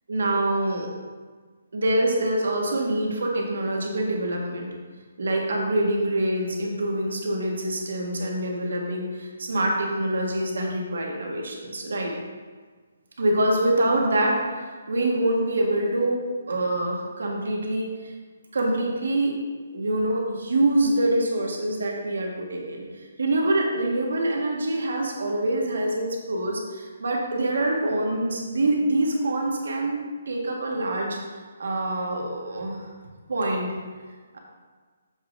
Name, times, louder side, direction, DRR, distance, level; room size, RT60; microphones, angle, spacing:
voice 1, 0.1-0.9 1.7-4.7 5.2-12.1 13.2-16.2 16.5-18.1 18.5-19.4 19.7-22.8 23.2-31.2 31.6-32.9 33.3-33.7 34.3-34.4, right 1 dB, 80° right, 0 dB, 1.5 m, -25 dB
7.3 x 6.5 x 2.6 m, 1.5 s
hypercardioid pair, 175°, 0 cm